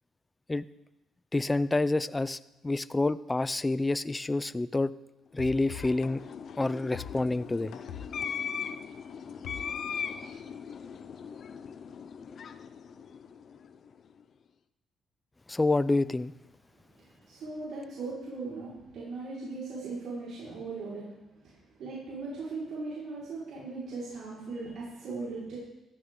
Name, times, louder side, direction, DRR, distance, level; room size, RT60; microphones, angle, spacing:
voice 1, 1.3-4.9 5.3-6.2 6.6-7.8 15.5-16.3, left 2 dB, 20° left, 16 dB, 0.5 m, -28 dB
sound 1, 5.4-10.3, left 9 dB, 85° left, 1.0 m, -45 dB
sound 2, 5.4-13.9, left 7 dB, 55° left, 0.7 m, -39 dB
voice 2, 17.0-21.1 21.4-21.5 21.8-25.6, right 3 dB, 75° right, -8 dB, 5.1 m, -38 dB
15.0 x 14.5 x 3.9 m, 1.0 s
cardioid pair, 90°, 0 cm